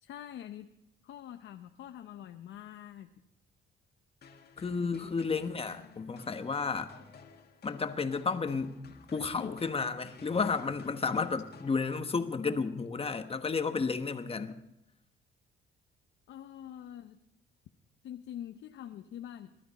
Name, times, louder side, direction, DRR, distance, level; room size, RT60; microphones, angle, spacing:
voice 1, 0.0-0.7 1.0-3.1 4.8-5.3 9.4-9.5 14.5-14.6 16.3-17.2 18.0-19.5, left 11 dB, 75° left, 6 dB, 0.7 m, -45 dB
sound 1, 4.2-12.3, left 5 dB, 55° left, 1.8 m, -55 dB
voice 2, 4.6-6.9 7.6-8.8 9.1-14.6, left 4 dB, 30° left, 8 dB, 1.2 m, -32 dB
20.5 x 12.0 x 4.1 m, 0.84 s
cardioid pair, 90°, 20 cm